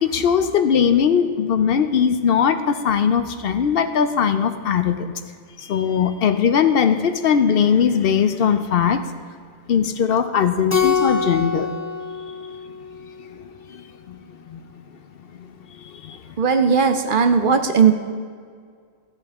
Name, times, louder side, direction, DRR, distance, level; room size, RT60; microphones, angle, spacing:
voice 1, 0.0-5.1 5.6-9.0 9.7-11.7 13.7-13.8 14.1-14.2 14.5-14.6 15.8-16.2, left 7 dB, 65° left, 10 dB, 0.7 m, -19 dB
Keyboard (musical), 10.7-13.3, left 5 dB, 20° left, 0.5 m, -24 dB
voice 2, 16.4-17.9, right 6 dB, 55° right, 7 dB, 0.8 m, -17 dB
15.0 x 7.9 x 3.5 m, 2.1 s
omnidirectional pair, 1.1 m